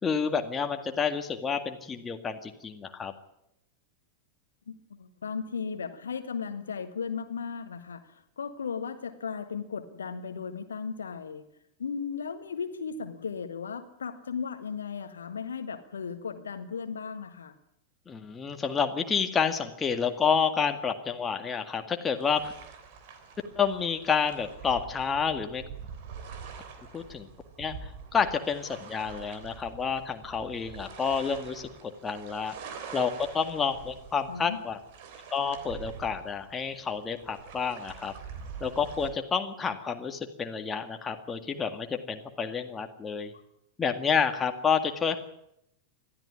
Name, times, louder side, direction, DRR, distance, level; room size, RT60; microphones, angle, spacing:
voice 1, 0.0-3.1 18.1-22.5 23.6-25.6 26.9-27.3 27.6-32.5 32.9-34.8 35.3-38.1 38.6-43.3 43.8-45.2, left 6 dB, 20° left, 6 dB, 2.0 m, -29 dB
voice 2, 4.7-11.4 11.8-17.5 34.3-34.6 43.3-43.4, left 6 dB, 70° left, 9 dB, 1.5 m, -36 dB
sound 1, 22.1-39.1, right 6 dB, 50° right, 3.4 m, -45 dB
21.0 x 13.5 x 9.8 m, 0.82 s
figure-of-eight pair, 90°, 0 cm